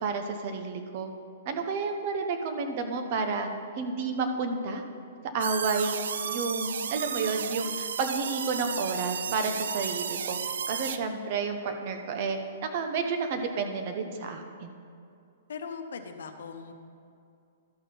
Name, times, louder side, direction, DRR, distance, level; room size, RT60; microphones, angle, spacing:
voice 1, 0.0-1.1 1.5-3.5 3.8-4.8 5.3-6.0 6.3-10.4 10.7-14.7, right 4 dB, 45° right, 6 dB, 0.9 m, -31 dB
sound 1, 5.4-11.0, right 7 dB, 80° right, 0.4 m, -33 dB
voice 2, 15.5-16.7, left 5 dB, 80° left, 7 dB, 0.8 m, -39 dB
12.5 x 4.3 x 5.6 m, 2.5 s
hypercardioid pair, 150°, 0 cm